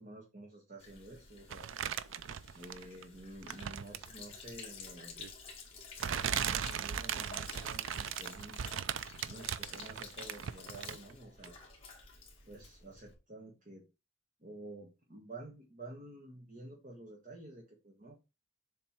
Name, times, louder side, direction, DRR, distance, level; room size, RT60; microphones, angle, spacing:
voice 1, 0.0-1.7 2.5-5.2 6.1-8.6 9.2-11.6 12.5-13.9 14.4-18.2, right 2 dB, 40° right, -1 dB, 1.3 m, -50 dB
Sink (filling or washing), 0.8-13.1, left 4 dB, 30° left, 1.9 m, -52 dB
sound 1, 1.5-3.0 3.4-4.2 5.2-5.3 6.0-11.1 11.4-11.5, right 8 dB, 70° right, 0.4 m, -38 dB
7.2 x 3.3 x 4.4 m, 0.27 s
head